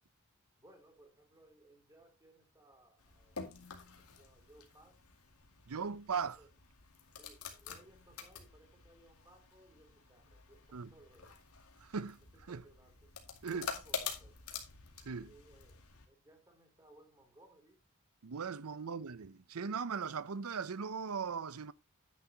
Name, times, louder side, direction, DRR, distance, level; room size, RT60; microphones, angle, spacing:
voice 1, 0.6-3.5 3.8-5.0 5.8-6.5 7.1-11.3 12.3-13.1 13.5-14.4 15.2-17.8 18.6-19.1, right 1 dB, 15° right, 3.2 m, -63 dB
sound 1, 3.0-16.1, left 6 dB, 90° left, 2.2 m, -48 dB
voice 2, 5.7-6.4 10.7-10.9 11.8-12.2 12.5-12.6 13.4-13.7 15.1-15.3 18.2-21.7, right 5 dB, 85° right, 0.6 m, -38 dB
10.5 x 9.3 x 2.9 m
head